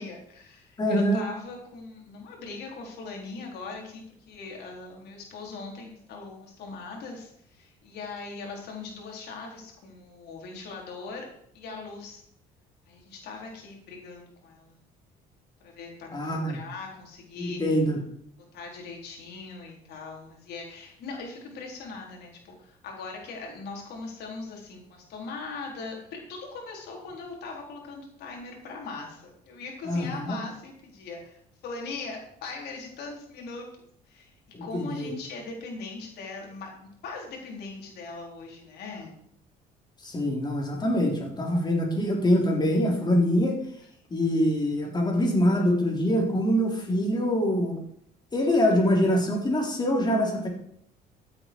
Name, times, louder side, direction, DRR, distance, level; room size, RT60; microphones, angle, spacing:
voice 1, 0.0-11.3 11.5-12.2 12.9-14.8 15.6-17.6 18.5-31.4 31.6-33.7 34.1-34.3 34.6-39.2 44.2-44.3, left 4 dB, 75° left, 0 dB, 4.1 m, -40 dB
voice 2, 0.8-1.2 16.1-16.6 17.4-18.0 29.9-30.4 34.5-35.1 40.0-43.6 44.1-47.8 48.3-50.5, equal, 25° left, 0 dB, 3.7 m, -24 dB
14.0 x 8.6 x 4.7 m, 0.68 s
cardioid pair, 110°, 17 cm